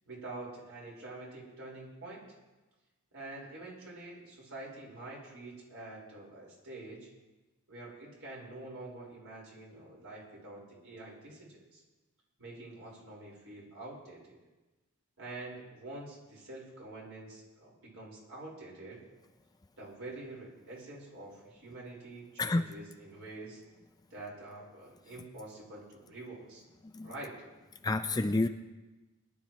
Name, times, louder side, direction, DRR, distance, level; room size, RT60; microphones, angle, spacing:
voice 1, 0.1-2.2 3.1-7.1 7.7-11.8 12.4-14.4 15.2-19.0 19.8-23.6 24.1-26.6 27.0-27.3, right 2 dB, 65° right, -4 dB, 4.8 m, -46 dB
voice 2, 27.8-28.5, left 2 dB, 15° left, 7 dB, 0.4 m, -28 dB
22.0 x 11.5 x 3.1 m, 1.1 s
head